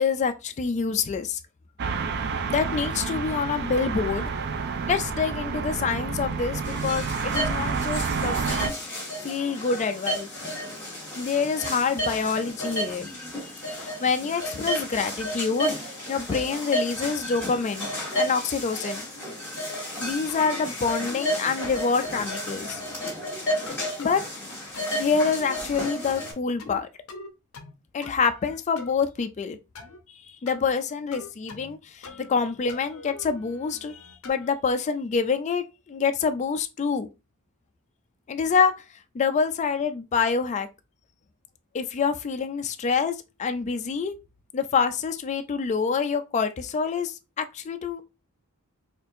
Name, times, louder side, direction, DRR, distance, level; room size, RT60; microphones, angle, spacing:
voice 1, 0.0-1.4 2.5-4.3 4.9-8.7 9.2-10.3 11.2-13.1 13.7-17.9 18.1-19.0 20.0-22.8 24.0-24.2 24.9-26.9 27.9-29.6 30.4-37.1 38.3-38.7 39.1-40.7 41.7-44.2 44.5-48.0, left 5 dB, 35° left, 0.3 m, -26 dB
sound 1, 1.8-8.7, right 5 dB, 50° right, 0.4 m, -29 dB
sound 2, 6.6-26.3, equal, 10° left, 1.9 m, -32 dB
sound 3, 20.3-20.7 21.1-21.3 21.6-22.3 22.7-23.0 23.7-24.2 24.7-25.1 25.5-25.8 26.1-26.8 27.1-27.7 28.0-28.9 29.8-30.0 30.5-30.7 31.1-31.8 32.0-32.4 32.7-34.5, left 4 dB, 70° left, 0.6 m, -43 dB
4.3 x 2.5 x 2.6 m
head